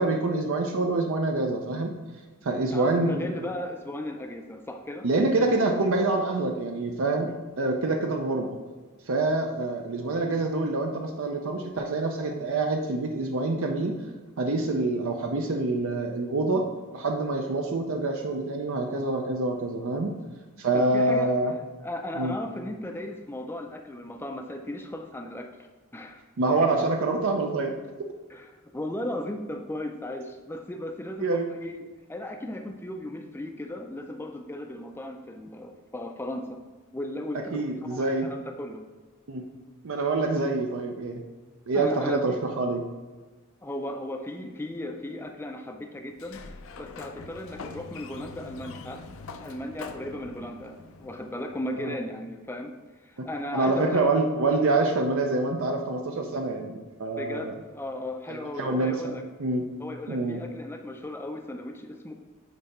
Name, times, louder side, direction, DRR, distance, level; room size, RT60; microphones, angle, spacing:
voice 1, 0.0-1.9 2.4-3.5 5.0-7.3 7.6-8.5 9.1-14.0 14.4-16.7 16.9-20.1 20.6-21.5 22.2-22.3 26.4-27.7 31.2-31.5 37.5-38.3 39.3-39.4 39.8-41.2 41.7-42.8 51.9-52.0 53.5-57.5 58.3-58.9 59.4-59.6 60.1-60.4, right 2 dB, 65° right, 3 dB, 0.5 m, -26 dB
voice 2, 2.7-5.1 7.3-7.4 20.7-25.5 25.9-26.2 28.3-36.6 36.9-38.9 41.7-42.4 43.6-46.4 46.8-49.1 49.4-50.8 51.0-54.0 57.2-59.2 59.8-62.1, left 1 dB, 10° left, 4 dB, 0.4 m, -36 dB
Sliding door, 46.1-51.8, left 4 dB, 65° left, 0.5 m, -43 dB
9.2 x 3.3 x 4.2 m, 1.3 s
head